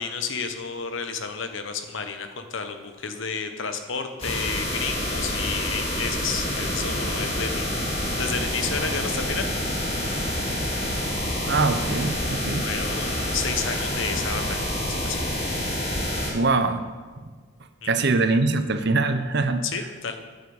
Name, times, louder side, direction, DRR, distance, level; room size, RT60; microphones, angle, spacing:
voice 1, 0.0-9.5 12.6-15.2 17.8-18.1 19.6-20.2, left 5 dB, 65° left, 7 dB, 1.1 m, -31 dB
sound 1, 4.2-16.3, left 1 dB, 30° left, 2.7 m, -27 dB
voice 2, 11.4-12.7 16.3-16.8 17.8-19.6, right 3 dB, 55° right, 9 dB, 0.7 m, -23 dB
9.6 x 7.4 x 7.2 m, 1.5 s
head